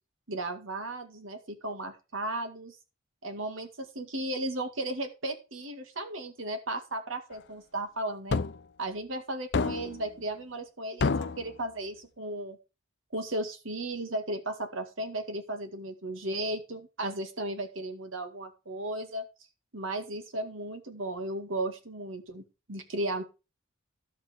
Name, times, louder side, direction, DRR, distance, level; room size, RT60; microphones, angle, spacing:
voice 1, 0.3-2.8 3.2-8.4 8.8-12.6 13.1-19.3 19.7-22.4 22.7-23.2, right 1 dB, 75° right, 6 dB, 2.1 m, -35 dB
sound 1, 8.3-8.6 9.5-10.0 11.0-11.5, left 4 dB, 55° left, 0.6 m, -28 dB
12.0 x 8.5 x 3.6 m, 0.29 s
head